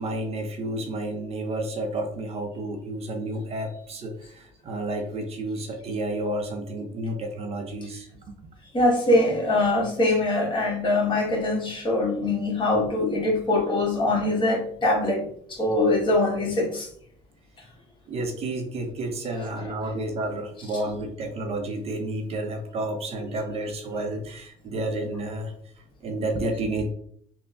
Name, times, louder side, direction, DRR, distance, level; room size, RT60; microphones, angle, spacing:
voice 1, 0.0-8.1 9.5-9.6 18.1-25.5 26.0-26.9, right 1 dB, 45° right, 4 dB, 0.5 m, -31 dB
voice 2, 8.7-15.2 15.5-16.9, left 2 dB, 35° left, -3 dB, 1.2 m, -23 dB
3.4 x 2.1 x 2.4 m, 0.63 s
supercardioid pair, 90°, 15 cm